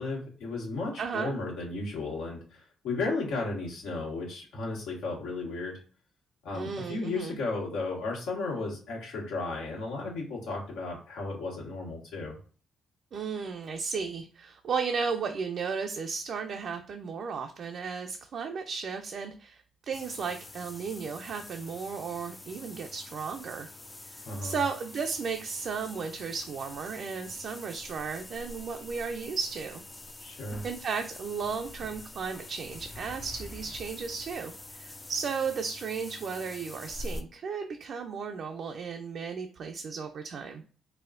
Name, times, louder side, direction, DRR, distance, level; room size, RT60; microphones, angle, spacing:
voice 1, 0.0-5.8 6.4-12.4 24.2-24.6 30.2-30.6, left 3 dB, 85° left, -3 dB, 1.5 m, -34 dB
voice 2, 1.0-1.3 6.5-7.4 13.1-23.7 24.1-29.8 30.6-40.6, right 5 dB, 60° right, 3 dB, 0.4 m, -34 dB
sound 1, 19.9-37.2, left 2 dB, 20° left, 0.4 m, -45 dB
4.1 x 2.2 x 2.5 m, 0.39 s
cardioid pair, 90°, 0 cm